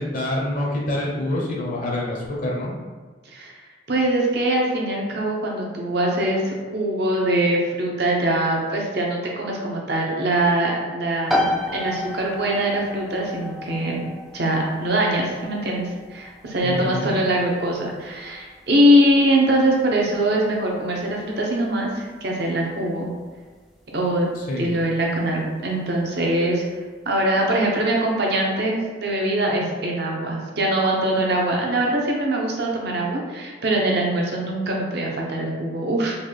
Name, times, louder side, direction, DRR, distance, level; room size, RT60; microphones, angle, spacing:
voice 1, 0.0-2.7 16.6-17.1 24.4-24.8, left 1 dB, 45° left, -2 dB, 0.6 m, -26 dB
voice 2, 3.9-14.1 14.3-23.1 23.9-26.6 27.1-36.2, right 1 dB, 60° right, -1 dB, 0.7 m, -22 dB
sound 1, 11.3-25.8, left 1 dB, ahead, 0.3 m, -33 dB
3.9 x 2.3 x 3.3 m, 1.4 s
head